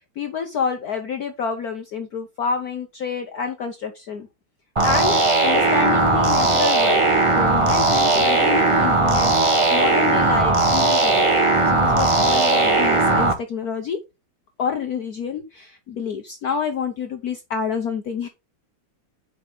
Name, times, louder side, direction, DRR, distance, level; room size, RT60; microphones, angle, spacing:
voice 1, 0.2-4.3 4.8-7.0 7.3-11.3 11.7-14.0 14.6-18.3, left 6 dB, 55° left, 6 dB, 1.3 m, -28 dB
sound 1, 4.8-13.3, right 2 dB, 20° right, 1.0 m, -18 dB
8.7 x 5.4 x 3.9 m, 0.25 s
omnidirectional pair, 2.2 m